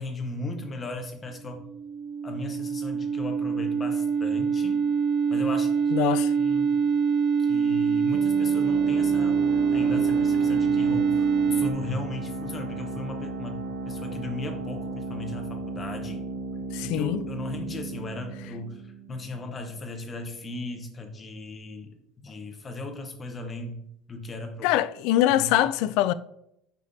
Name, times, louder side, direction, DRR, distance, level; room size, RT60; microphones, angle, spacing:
voice 1, 0.0-1.6 2.2-4.9 5.3-5.7 6.0-6.7 7.4-9.4 9.7-16.3 16.8-24.7 25.3-25.5, left 2 dB, 20° left, 0.9 m, -37 dB
sound 1, 1.5-11.7, right 6 dB, 40° right, 0.4 m, -24 dB
voice 2, 5.9-6.3 16.7-17.2 24.6-26.1, left 13 dB, 65° left, 0.3 m, -23 dB
sound 2, 8.1-19.5, right 3 dB, 80° right, 2.5 m, -35 dB
8.9 x 5.3 x 2.7 m
cardioid pair, 175°, 0 cm